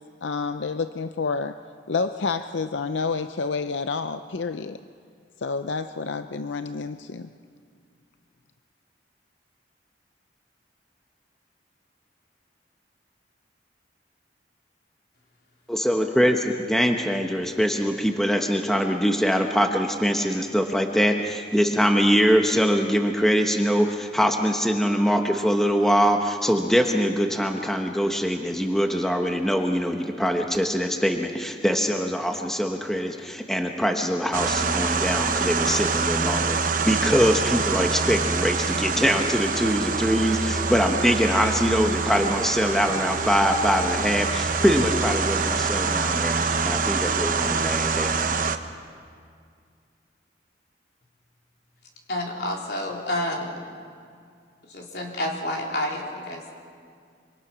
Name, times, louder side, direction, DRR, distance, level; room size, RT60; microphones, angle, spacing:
voice 1, 0.2-1.6 1.9-4.8 5.4-7.3, left 4 dB, 85° left, 10 dB, 0.6 m, -29 dB
voice 2, 15.7-36.6 36.8-48.1, equal, ahead, 3 dB, 1.2 m, -23 dB
sound 1, 34.3-48.6, right 4 dB, 45° right, 1.0 m, -25 dB
voice 3, 52.1-53.6 54.7-56.5, left 1 dB, 60° left, -1 dB, 4.1 m, -29 dB
26.0 x 25.0 x 6.1 m, 2.2 s
head